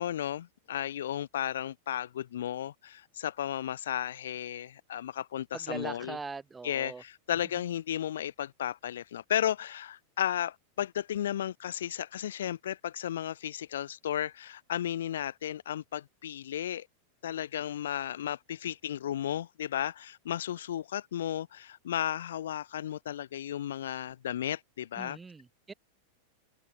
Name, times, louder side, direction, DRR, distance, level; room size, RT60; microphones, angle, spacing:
voice 1, 0.0-6.2 6.6-16.9 17.2-25.2, left 11 dB, 60° left, 0.4 m, -34 dB
voice 2, 5.5-7.0 25.0-25.7, right 4 dB, 15° right, 5.8 m, -41 dB
figure-of-eight pair, 90°, 0 cm